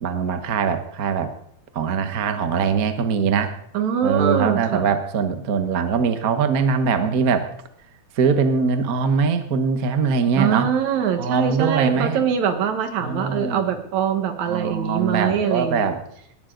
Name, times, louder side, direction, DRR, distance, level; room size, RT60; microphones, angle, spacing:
voice 1, 0.0-1.3 1.7-3.5 4.0-7.5 8.2-10.7 11.2-12.2 13.0-13.7 14.5-16.0, right 5 dB, 55° right, 8 dB, 0.9 m, -22 dB
voice 2, 3.7-4.9 10.4-16.0, right 8 dB, 70° right, 7 dB, 2.8 m, -23 dB
18.5 x 12.5 x 3.9 m, 0.68 s
omnidirectional pair, 3.4 m